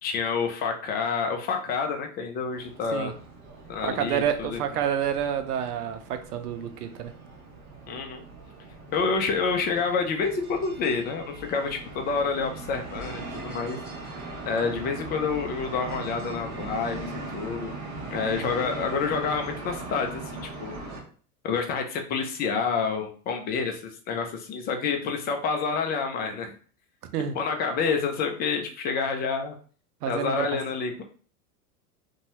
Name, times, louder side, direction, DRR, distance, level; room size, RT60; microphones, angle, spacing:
voice 1, 0.0-3.1 3.7-4.6 7.9-8.2 8.9-13.8 14.5-17.7 18.1-20.7 21.4-26.5 27.3-29.6 30.1-31.0, left 5 dB, 20° left, 4 dB, 0.4 m, -28 dB
sound 1, 2.5-21.0, right 2 dB, 40° right, 1.0 m, -39 dB
voice 2, 3.8-7.1 27.1-27.4 30.0-30.5, right 9 dB, 85° right, 8 dB, 0.6 m, -28 dB
2.6 x 2.2 x 3.0 m, 0.42 s
hypercardioid pair, 100°, 45 cm